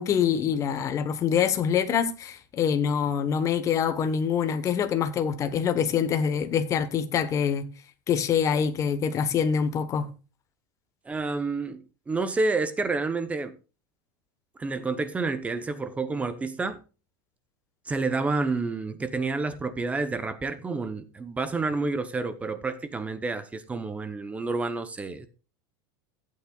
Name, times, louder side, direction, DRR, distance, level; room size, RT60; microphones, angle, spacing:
voice 1, 0.0-7.7 8.1-10.1, left 7 dB, 25° left, 1.1 m, -25 dB
voice 2, 11.1-13.5 14.6-16.8 17.9-25.3, right 3 dB, 10° right, 0.8 m, -29 dB
15.5 x 8.6 x 2.4 m
supercardioid pair, 155°, 12 cm